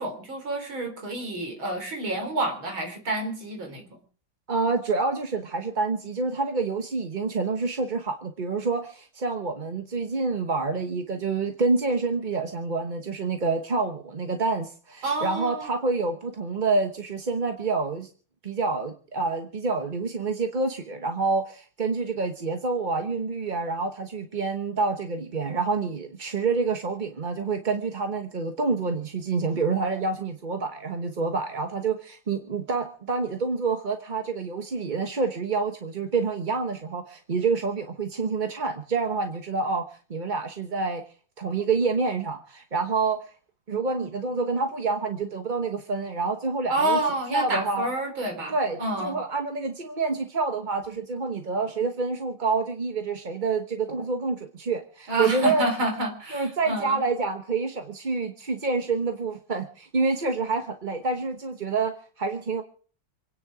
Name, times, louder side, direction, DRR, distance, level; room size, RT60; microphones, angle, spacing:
voice 1, 0.0-3.9 15.0-15.7 46.7-49.2 55.1-57.0, right 2 dB, 90° right, 5 dB, 4.9 m, -29 dB
voice 2, 4.5-18.1 18.4-41.0 41.4-43.3 43.7-47.0 47.3-47.9 48.5-55.7 56.3-62.6, right 4 dB, 30° right, 5 dB, 1.0 m, -27 dB
26.5 x 10.0 x 4.8 m, 0.43 s
omnidirectional pair, 2.1 m